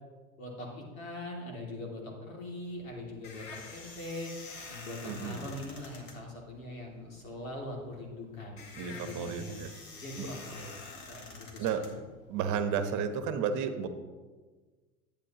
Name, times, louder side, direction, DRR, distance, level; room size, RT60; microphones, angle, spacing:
voice 1, 0.4-4.3 4.7-10.8 11.1-11.9, left 1 dB, 85° left, -1 dB, 2.6 m, -42 dB
sound 1, 2.6-12.6, left 3 dB, 65° left, 2.0 m, -48 dB
voice 2, 5.1-5.4 8.8-9.7 10.2-10.3 11.6-11.8 12.3-13.9, right 7 dB, 45° right, 9 dB, 1.0 m, -32 dB
11.0 x 8.6 x 2.9 m, 1.4 s
hypercardioid pair, 85°, 40 cm